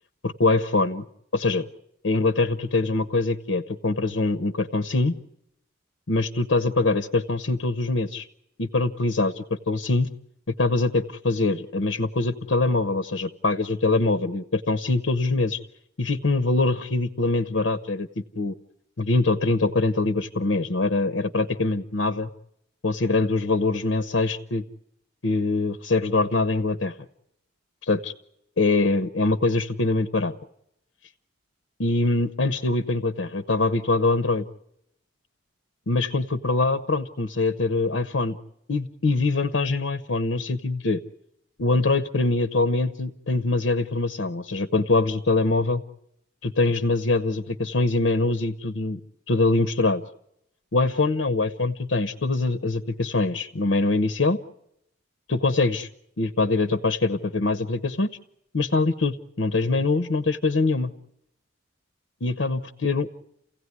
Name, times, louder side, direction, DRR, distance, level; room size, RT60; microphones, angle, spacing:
voice 1, 0.2-1.0 1.3-1.6 2.0-5.2 6.1-8.3 8.6-10.1 10.6-15.6 16.0-18.5 19.0-22.3 22.8-24.6 25.2-26.9 27.8-28.1 28.6-30.3 31.8-34.5 35.9-38.4 38.7-41.0 41.6-45.8 46.4-49.0 49.3-50.0 50.7-54.4 55.3-55.9 56.2-58.1 58.5-60.9 62.2-63.1, left 3 dB, 80° left, 10 dB, 0.9 m, -23 dB
29.5 x 16.5 x 9.6 m, 0.80 s
head